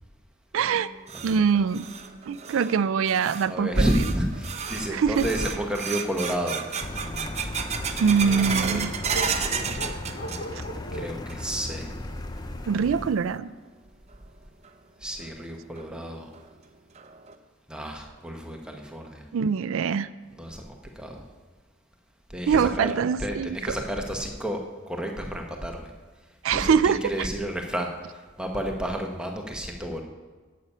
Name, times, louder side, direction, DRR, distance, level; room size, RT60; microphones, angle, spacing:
voice 1, 0.5-0.9 1.2-1.8 2.3-3.9 4.9-5.3 8.0-8.9 10.5-10.6 12.7-13.5 19.3-20.1 22.5-23.6 26.4-27.3, right 6 dB, 65° right, 16 dB, 0.4 m, -23 dB
sound 1, 0.7-10.8 11.1-11.7 12.1-12.2 12.9-13.0 14.6-14.7 15.2-15.3 15.8-15.9 16.3-16.4 17.0-17.3, right 6 dB, 30° right, 0.7 m, -33 dB
voice 2, 1.1-1.6 3.5-6.6 8.2-9.0 10.9-12.0 15.0-16.3 17.7-19.2 20.3-21.2 22.3-24.6 24.9-25.9 26.5-30.0, equal, 5° right, 2 dB, 1.0 m, -31 dB
sound 2, 3.9-13.4, equal, 50° left, 0.8 m, -44 dB
Car, 6.8-13.1, left 2 dB, 20° left, 0.5 m, -36 dB
11.5 x 8.5 x 5.5 m, 1.4 s
head